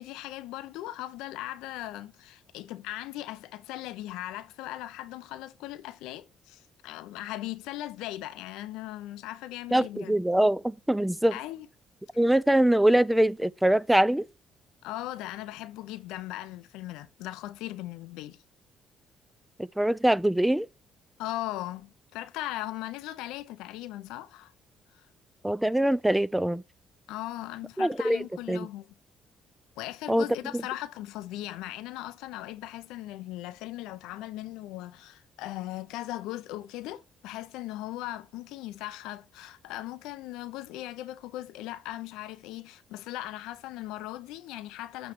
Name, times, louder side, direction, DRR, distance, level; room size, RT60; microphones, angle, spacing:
voice 1, 0.0-10.2 11.3-11.7 14.8-18.4 21.2-24.5 27.1-28.9 29.8-45.1, left 15 dB, 90° left, 0.5 m, -38 dB
voice 2, 9.7-11.3 12.2-14.3 19.6-20.7 25.4-26.6 27.8-28.7 30.1-30.2 30.5-30.6, right 1 dB, 5° right, 0.3 m, -23 dB
8.6 x 3.1 x 5.9 m
cardioid pair, 85°, 0 cm